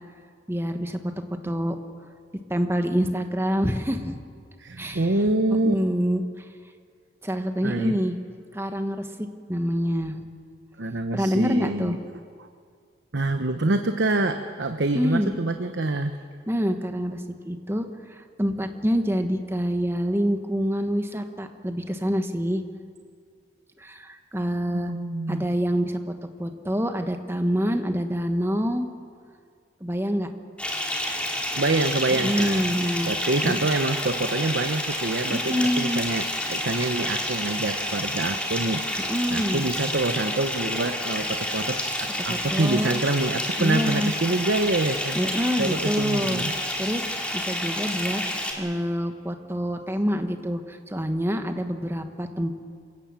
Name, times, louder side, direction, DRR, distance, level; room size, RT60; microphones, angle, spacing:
voice 1, 0.5-1.8 2.3-4.2 4.8-5.1 5.6-6.4 7.2-8.2 8.5-10.2 11.1-12.0 14.9-15.3 16.5-22.6 23.8-24.9 25.3-26.1 26.4-28.9 29.8-30.3 32.1-33.1 33.4-33.6 35.3-36.0 39.1-39.7 42.3-42.9 43.6-44.1 45.1-47.0 47.3-52.5, equal, 15° right, 6 dB, 1.3 m, -26 dB
voice 2, 4.6-5.7 7.6-8.0 10.8-12.0 13.1-16.1 24.7-25.5 31.5-32.7 33.1-39.0 39.3-45.2 45.6-46.5, right 2 dB, 75° right, 7 dB, 0.9 m, -26 dB
Bathtub (filling or washing) / Fill (with liquid), 30.6-48.5, left 1 dB, 5° left, 2.7 m, -29 dB
27.0 x 17.0 x 7.5 m, 2.1 s
head